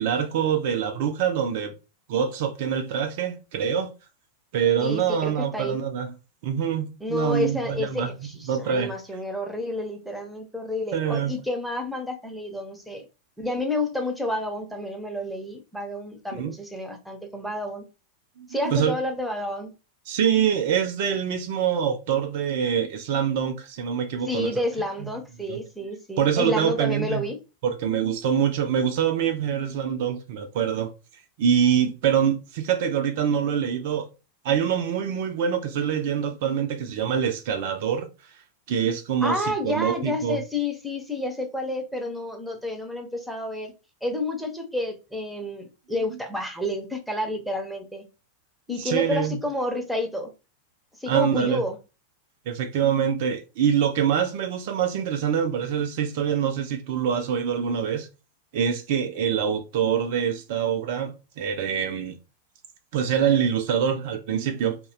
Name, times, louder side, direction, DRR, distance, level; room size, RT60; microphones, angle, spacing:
voice 1, 0.0-1.7 2.1-3.9 4.5-6.1 6.4-8.1 8.5-8.9 10.9-11.3 16.4-16.5 18.4-19.0 20.1-24.5 25.0-25.1 25.5-25.6 26.2-27.2 27.6-30.9 31.4-34.1 34.4-38.1 38.7-40.4 48.7-49.4 51.1-51.6 52.5-58.1 58.5-62.2 62.9-64.8, right 8 dB, 50° right, 0.4 m, -25 dB
voice 2, 4.8-5.8 7.0-13.0 13.4-17.9 18.5-19.7 24.3-27.4 39.2-43.7 44.0-48.0 48.7-50.3 51.0-51.8, left 1 dB, ahead, 0.6 m, -30 dB
2.6 x 2.1 x 2.5 m
figure-of-eight pair, 90°, 0 cm